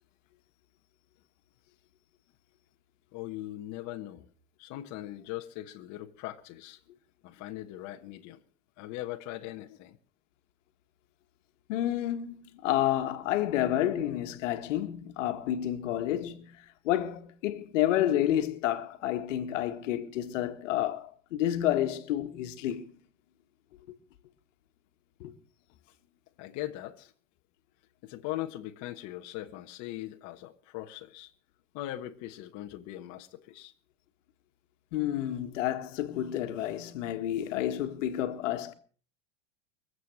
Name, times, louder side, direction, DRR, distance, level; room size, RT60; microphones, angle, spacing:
voice 1, 3.1-4.3 4.6-6.8 7.2-8.4 8.8-10.0 26.4-27.1 28.0-31.3 31.7-33.7, left 15 dB, 50° left, 1.5 m, -40 dB
voice 2, 11.7-22.9 25.2-25.3 34.9-38.7, left 12 dB, 80° left, 1.8 m, -30 dB
24.0 x 8.1 x 6.4 m
supercardioid pair, 125°, 37 cm